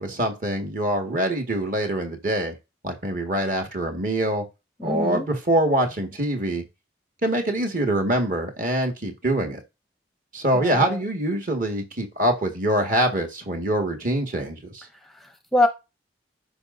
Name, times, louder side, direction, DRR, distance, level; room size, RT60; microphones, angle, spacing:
voice 1, 0.0-2.6 2.8-4.4 4.8-6.6 7.2-9.6 10.3-14.8, right 1 dB, 45° right, 1.9 m, -24 dB
voice 2, 4.8-5.3 10.5-11.0 15.1-15.7, left 1 dB, ahead, 0.7 m, -25 dB
13.0 x 5.3 x 2.7 m
head